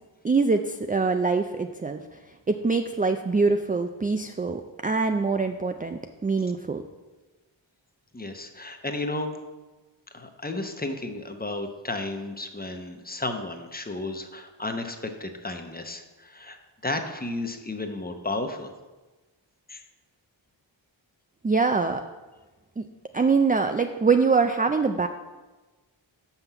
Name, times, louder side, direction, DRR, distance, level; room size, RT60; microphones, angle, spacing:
voice 1, 0.2-2.0 2.5-6.8 21.4-22.0 22.8-22.9 23.1-25.1, right 4 dB, 20° right, 6 dB, 0.3 m, -24 dB
voice 2, 8.1-9.4 10.1-16.6 16.8-18.7 19.7-19.8, left 2 dB, 20° left, 6 dB, 0.8 m, -33 dB
6.0 x 5.7 x 6.8 m, 1.2 s
wide cardioid pair, 80°, 47 cm